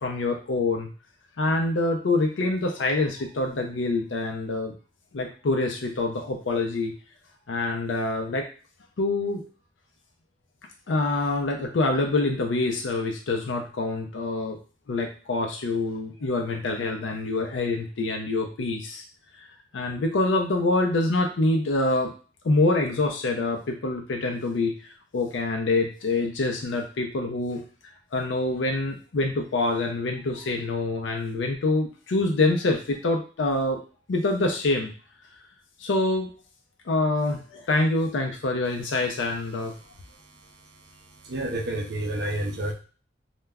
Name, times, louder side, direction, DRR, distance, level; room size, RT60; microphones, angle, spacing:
voice 1, 0.0-0.9 1.4-4.7 5.1-6.9 7.5-8.5 9.0-9.4 10.9-14.6 14.9-19.0 19.4-19.5 19.7-22.1 22.4-24.7 25.1-27.6 28.1-33.8 34.1-34.9 35.8-36.3 36.9-39.7, left 2 dB, 75° left, 3 dB, 0.5 m, -25 dB
voice 2, 41.2-42.7, right 1 dB, 55° right, 4 dB, 0.5 m, -29 dB
2.2 x 2.0 x 3.4 m, 0.37 s
head